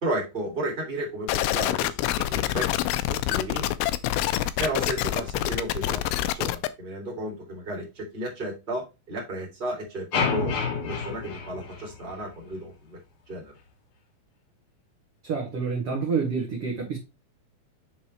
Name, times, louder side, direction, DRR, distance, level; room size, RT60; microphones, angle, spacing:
voice 1, 0.0-2.7 3.1-3.6 4.6-13.0 13.3-13.5, right 1 dB, 15° right, 2.4 m, -33 dB
sound 1, 1.3-6.7, left 14 dB, 90° left, 2.4 m, -26 dB
sound 2, 10.1-12.4, left 5 dB, 65° left, 2.3 m, -29 dB
voice 2, 15.2-17.0, right 5 dB, 50° right, 2.0 m, -28 dB
6.5 x 4.2 x 4.3 m
omnidirectional pair, 4.2 m